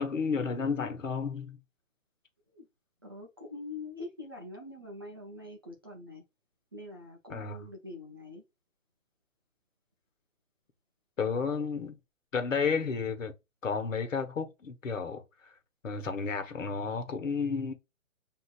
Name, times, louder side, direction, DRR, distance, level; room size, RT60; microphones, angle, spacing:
voice 1, 0.0-1.6 7.3-7.7 11.2-11.9 12.3-13.3 13.6-15.5 15.8-17.7, left 5 dB, 70° left, 1.2 m, -32 dB
voice 2, 3.0-6.2 6.7-8.4, left 2 dB, 20° right, 0.4 m, -44 dB
6.5 x 2.8 x 2.3 m
figure-of-eight pair, 135°, 39 cm